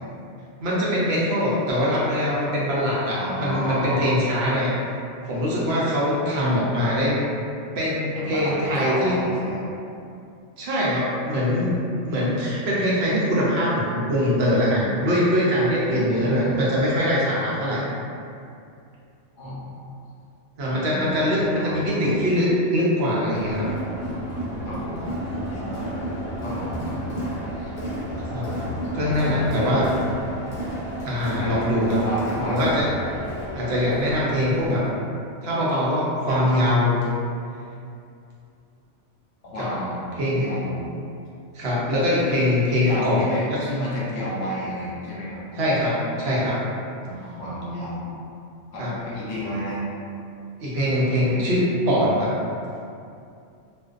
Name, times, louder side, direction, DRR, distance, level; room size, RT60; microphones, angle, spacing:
voice 1, 0.6-4.7 5.3-7.2 7.8-9.1 10.6-11.7 12.0-17.8 20.6-23.7 28.3-28.5 28.9-29.8 31.0-32.0 32.5-32.8 33.5-34.8 35.4-37.0 39.6-39.7 40.2-40.4 41.5-43.2 45.6-46.6 48.8-48.9 50.6-52.3, equal, 65° right, -6 dB, 0.8 m, -22 dB
voice 2, 3.1-4.2 8.1-9.7 15.8-16.6 19.4-19.8 20.6-22.3 24.6-25.0 25.5-25.9 26.4-27.3 27.6-27.7 28.5-29.8 31.4-31.6 31.9-32.6 36.3-36.4 39.4-40.9 42.8-45.4 47.0-48.1 48.7-49.8 51.0-51.4, equal, 90° left, -6 dB, 1.0 m, -32 dB
Crowd, 23.3-34.9, equal, 55° left, 0.8 m, -32 dB
2.4 x 2.1 x 2.3 m, 2.5 s
omnidirectional pair, 1.3 m